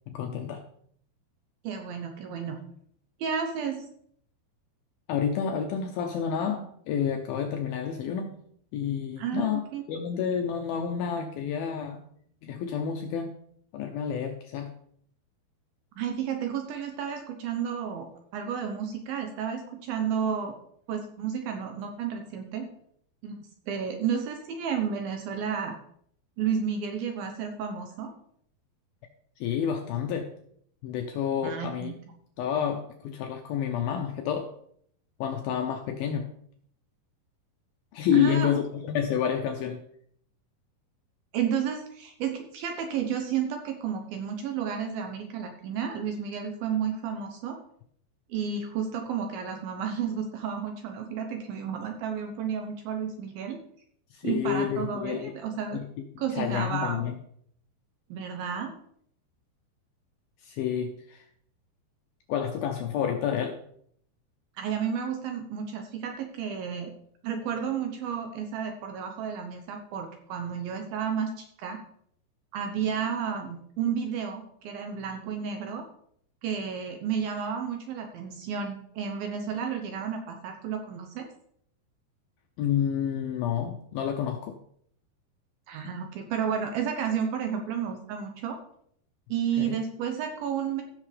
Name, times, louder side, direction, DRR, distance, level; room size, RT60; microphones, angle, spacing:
voice 1, 0.1-0.6 5.1-8.4 8.7-12.0 12.4-13.3 13.7-14.7 29.4-30.3 30.8-31.9 32.4-34.5 35.2-36.3 37.9-39.9 54.1-55.3 55.7-55.8 56.4-57.1 60.4-61.2 62.3-63.6 82.6-84.6 89.6-89.8, left 8 dB, 80° left, 4 dB, 2.2 m, -29 dB
voice 2, 1.6-2.6 3.2-3.9 9.2-9.8 16.0-20.6 20.9-22.7 23.2-23.4 23.7-25.8 26.4-28.1 31.4-32.0 38.1-38.5 41.3-47.6 48.3-53.6 54.2-55.8 56.2-57.1 58.1-58.7 64.6-66.9 67.2-71.8 72.5-75.8 76.4-81.3 85.7-88.6 89.3-90.8, right 7 dB, 75° right, 4 dB, 2.3 m, -32 dB
16.0 x 6.6 x 3.3 m, 0.66 s
omnidirectional pair, 5.0 m